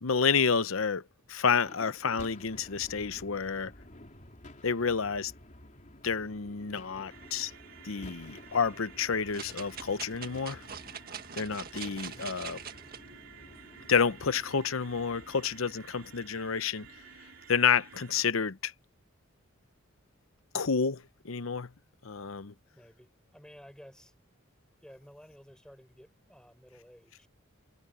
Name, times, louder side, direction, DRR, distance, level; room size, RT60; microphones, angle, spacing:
voice 1, 0.0-1.0 1.3-3.7 4.6-5.3 6.0-7.5 7.8-10.6 11.4-12.6 13.9-16.9 17.5-18.7 20.5-21.7 22.0-22.5, left 6 dB, 80° left, 0.8 m, -29 dB
sound 1, 1.7-18.0, left 1 dB, 40° left, 3.6 m, -52 dB
sound 2, 7.1-18.2, right 7 dB, 70° right, 3.8 m, -53 dB
sound 3, 9.3-13.0 13.6-13.7, right 7 dB, 50° right, 1.6 m, -43 dB
voice 2, 12.0-12.4 22.7-24.1 24.8-27.3, equal, 5° left, 4.4 m, -54 dB
head